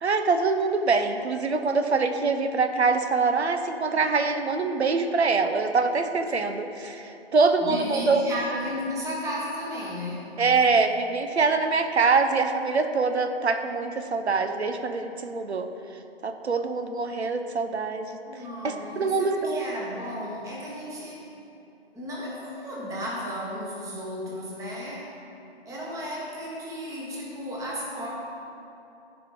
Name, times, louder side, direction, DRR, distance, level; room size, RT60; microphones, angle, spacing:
voice 1, 0.0-8.2 10.4-15.7 16.2-18.1 18.6-19.6, right 4 dB, 90° right, 8 dB, 0.7 m, -24 dB
voice 2, 7.6-10.3 18.3-21.3 21.9-25.1 25.6-28.1, equal, 10° right, -4 dB, 1.2 m, -34 dB
13.0 x 5.0 x 3.7 m, 2.8 s
figure-of-eight pair, 135°, 32 cm